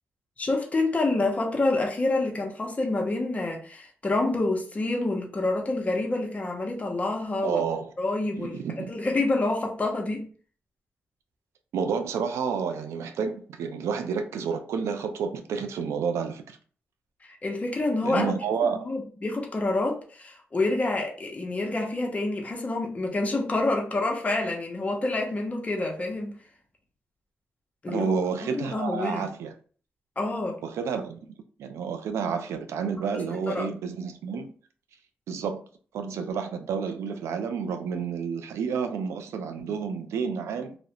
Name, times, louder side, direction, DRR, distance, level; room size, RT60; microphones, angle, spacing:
voice 1, 0.4-7.6 8.0-8.6 8.9-10.2 17.2-18.3 18.6-26.4 27.8-28.1 28.5-29.3 30.2-30.6 33.5-33.7, left 2 dB, 30° left, 0.7 m, -27 dB
voice 2, 7.4-7.9 8.3-8.9 11.7-16.6 18.0-18.9 27.9-29.5 30.6-34.5 35.3-35.6 35.9-40.8, right 6 dB, 90° right, 0.4 m, -30 dB
2.4 x 2.0 x 2.8 m
cardioid pair, 65°, 5 cm